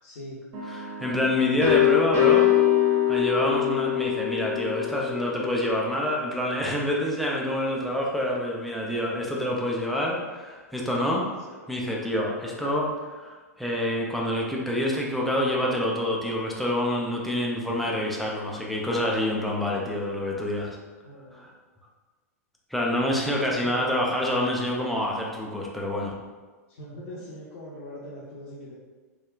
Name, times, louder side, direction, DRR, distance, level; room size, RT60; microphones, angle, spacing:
voice 1, 0.0-0.4 11.5-11.7 21.0-21.5 23.3-24.0 26.7-28.8, equal, 55° left, -7 dB, 0.6 m, -41 dB
sound 1, 0.5-6.2, left 11 dB, 35° right, 0.8 m, -24 dB
voice 2, 0.7-2.5 2.8-11.3 11.7-20.8 21.3-21.4 22.7-26.1, left 1 dB, ahead, -2 dB, 0.4 m, -27 dB
3.5 x 2.2 x 2.3 m, 1.4 s
figure-of-eight pair, 100°, 9 cm